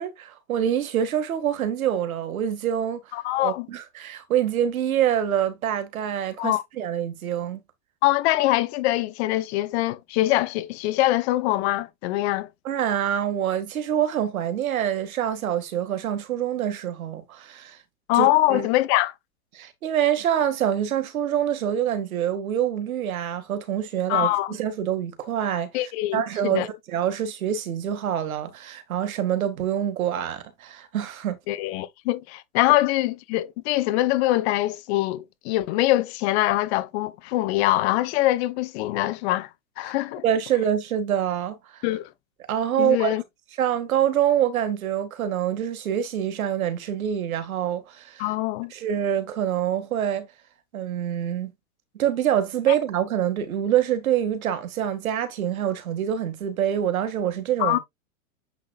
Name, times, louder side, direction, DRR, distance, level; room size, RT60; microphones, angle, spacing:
voice 1, 0.0-3.0 3.4-7.6 12.6-17.8 18.1-18.7 19.5-25.7 26.1-31.4 40.2-41.8 42.5-43.2 43.6-48.2 48.7-50.3 50.7-51.5 51.9-57.8, right 10 dB, 80° right, 2.3 m, -25 dB
voice 2, 3.1-3.7 6.4-6.6 8.0-12.5 18.1-19.1 24.1-24.6 25.7-26.7 31.5-39.5 39.8-40.2 41.8-42.1 42.8-43.2 48.2-48.7 57.6-57.8, left 16 dB, 50° left, 1.1 m, -23 dB
8.3 x 5.9 x 2.5 m
hypercardioid pair, 125°, 41 cm